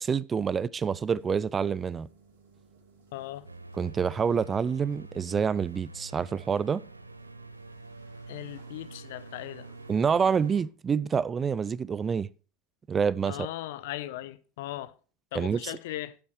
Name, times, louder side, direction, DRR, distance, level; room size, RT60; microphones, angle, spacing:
voice 1, 0.0-2.1 3.8-6.8 9.9-12.3 12.9-13.5 15.3-15.7, right 6 dB, 25° right, 0.4 m, -27 dB
sound 1, 0.7-10.6, right 5 dB, 70° right, 2.4 m, -58 dB
voice 2, 3.1-3.5 8.3-9.7 13.3-14.9 15.3-16.2, left 15 dB, 60° left, 0.7 m, -38 dB
sound 2, 3.5-10.6, right 2 dB, 85° right, 0.6 m, -47 dB
12.0 x 8.4 x 3.2 m
figure-of-eight pair, 80°, 0 cm